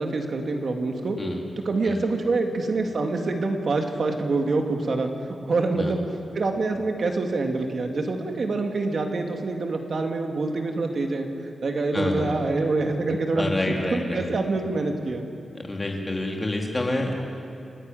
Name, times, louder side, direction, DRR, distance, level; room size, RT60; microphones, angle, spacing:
voice 1, 0.0-1.2 1.7-6.0 6.4-13.5 13.9-15.3, right 3 dB, 45° right, 3 dB, 2.0 m, -26 dB
voice 2, 11.9-12.4 13.3-14.3 15.5-17.1, left 1 dB, 20° left, 0 dB, 2.6 m, -28 dB
29.5 x 11.5 x 9.1 m, 2.6 s
wide cardioid pair, 170°, 0 cm